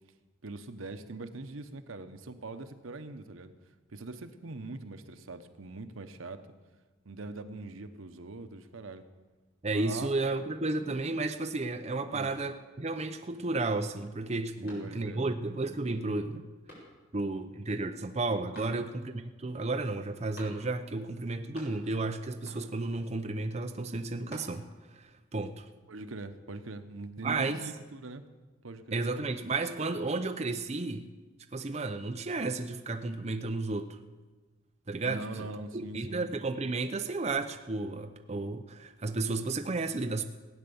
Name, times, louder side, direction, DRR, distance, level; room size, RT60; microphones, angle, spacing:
voice 1, 0.4-3.5 3.9-6.5 7.0-9.1 9.7-10.1 12.1-12.3 14.6-15.2 18.6-18.9 25.9-28.2 28.6-29.0 35.0-36.2, right 2 dB, 85° right, 9 dB, 0.9 m, -42 dB
voice 2, 9.6-16.5 17.1-19.1 19.4-24.7 24.9-25.6 27.2-27.6 28.9-31.1 31.5-34.0 34.9-35.5 35.7-40.2, right 3 dB, 30° right, 6 dB, 0.6 m, -33 dB
sound 1, 14.6-15.3 15.8-15.9 16.6-17.3 18.5-19.2 20.3-21.0 21.2-22.0 22.4-22.9 23.9-24.9, equal, 50° left, 5.0 m, -52 dB
17.5 x 9.0 x 7.0 m, 1.3 s
head